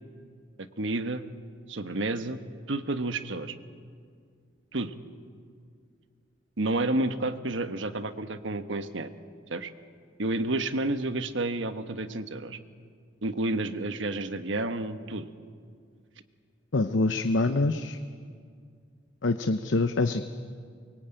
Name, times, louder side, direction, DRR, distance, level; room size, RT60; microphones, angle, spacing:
voice 1, 0.6-1.3 1.7-2.4 2.7-3.6 4.7-4.9 6.6-9.1 9.5-9.7 10.2-12.6 13.2-15.3, right 2 dB, 75° right, 9 dB, 1.3 m, -30 dB
voice 2, 16.7-18.0 19.2-20.2, left 2 dB, 75° left, 9 dB, 0.8 m, -25 dB
23.5 x 23.0 x 9.0 m, 2.2 s
head